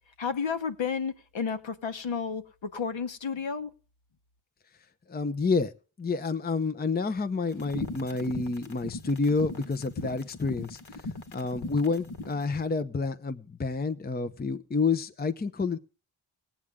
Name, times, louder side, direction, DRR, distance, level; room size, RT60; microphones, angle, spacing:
voice 1, 0.2-3.7, left 6 dB, 65° left, 1.4 m, -32 dB
voice 2, 5.1-5.7 6.0-15.8, left 4 dB, 20° left, 0.7 m, -29 dB
sound 1, 7.5-12.4, left 2 dB, 50° left, 1.5 m, -38 dB
19.0 x 8.7 x 3.6 m
wide cardioid pair, 145°, 49 cm